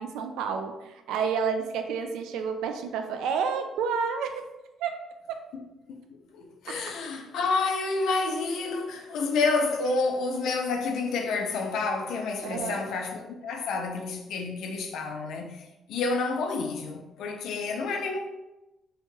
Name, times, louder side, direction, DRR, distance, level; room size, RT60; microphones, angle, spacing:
voice 1, 0.0-4.5 4.8-5.0 5.3-5.4 6.7-6.8 9.8-10.0 12.4-12.8, right 6 dB, 90° right, 0.3 m, -30 dB
voice 2, 5.9-18.3, left 4 dB, 80° left, 0.4 m, -29 dB
2.7 x 2.2 x 3.2 m
cardioid pair, 90°, 0 cm